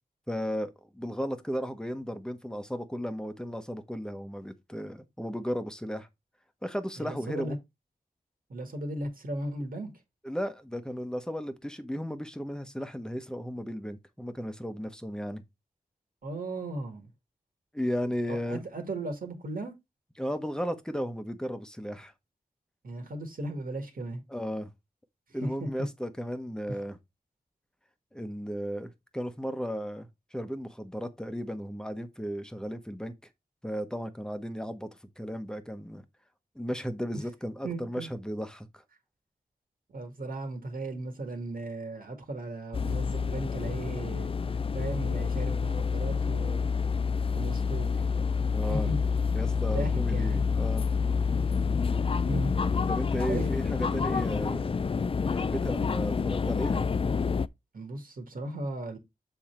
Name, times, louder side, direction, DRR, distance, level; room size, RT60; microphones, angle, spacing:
voice 1, 0.3-6.1 6.6-7.6 10.2-15.4 17.7-18.6 20.2-22.1 24.3-24.7 25.3-27.0 28.1-33.1 33.6-34.9 35.2-36.0 36.5-38.8 48.5-48.9 49.3-50.9 52.9-54.7 55.0-56.8, equal, 5° left, 1.1 m, -35 dB
voice 2, 7.0-7.6 8.5-9.9 16.2-17.1 18.3-19.7 22.8-24.2 25.4-25.7 26.7-26.8 37.6-38.1 39.9-46.7 47.4-47.9 48.7-49.0 49.7-50.4 52.2-52.5 53.3-53.6 57.7-59.0, right 2 dB, 70° right, 1.9 m, -36 dB
sound 1, 42.7-57.5, left 5 dB, 35° left, 0.4 m, -28 dB
7.1 x 3.6 x 4.4 m
cardioid pair, 60°, 15 cm